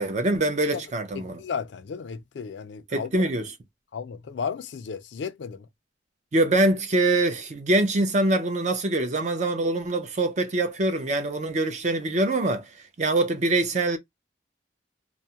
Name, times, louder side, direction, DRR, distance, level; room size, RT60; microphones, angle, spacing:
voice 1, 0.0-1.4 2.9-3.5 6.3-12.7 13.0-14.0, right 2 dB, 40° right, 0.5 m, -24 dB
voice 2, 1.1-3.2 3.9-5.7, left 6 dB, 75° left, 0.4 m, -34 dB
2.3 x 2.0 x 2.7 m
head